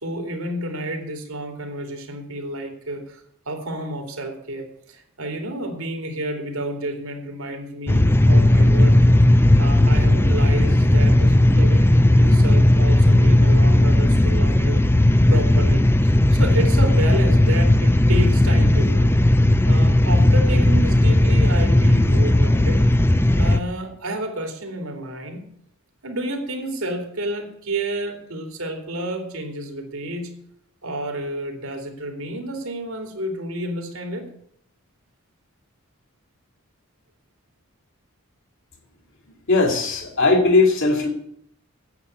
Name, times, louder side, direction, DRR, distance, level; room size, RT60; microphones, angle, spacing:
voice 1, 0.0-8.9 9.6-14.9 15.3-15.9 16.3-19.2 19.6-22.8 23.3-25.5 26.0-30.3 30.8-34.3, right 1 dB, 75° right, 4 dB, 3.0 m, -30 dB
sound 1, 7.9-23.6, left 1 dB, 10° left, 0.5 m, -16 dB
voice 2, 39.5-41.1, left 3 dB, 60° left, 2 dB, 2.9 m, -18 dB
9.5 x 8.5 x 9.8 m, 0.69 s
head